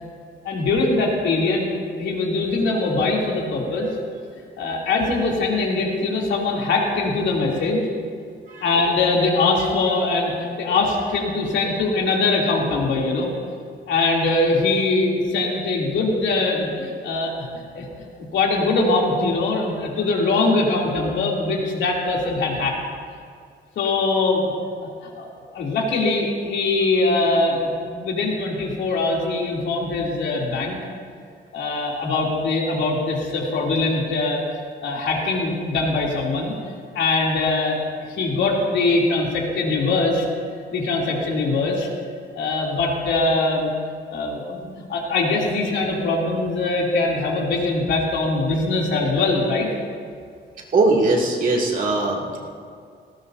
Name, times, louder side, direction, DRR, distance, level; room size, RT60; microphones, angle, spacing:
voice 1, 0.4-3.9 4.6-7.8 8.6-10.3 10.6-13.3 13.9-17.5 17.7-17.9 18.3-22.8 23.7-24.5 25.2-25.3 25.5-30.7 31.5-34.4 34.8-36.5 36.9-37.8 38.1-40.2 40.7-41.9 42.3-43.7 44.1-49.7, left 3 dB, 80° left, -3 dB, 3.1 m, -22 dB
voice 2, 50.7-52.4, right 2 dB, 45° right, -2 dB, 2.6 m, -20 dB
18.5 x 18.0 x 2.8 m, 2.2 s
cardioid pair, 145°, 19 cm